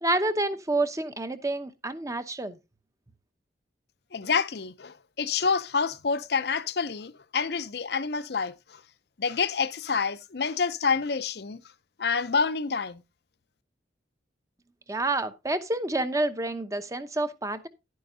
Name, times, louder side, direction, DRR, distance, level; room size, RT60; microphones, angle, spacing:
voice 1, 0.0-2.6 14.9-17.7, right 2 dB, 15° right, 0.8 m, -28 dB
voice 2, 4.1-8.5 9.2-11.6 12.0-13.0, left 5 dB, 60° left, 0.6 m, -28 dB
11.0 x 9.4 x 2.7 m
head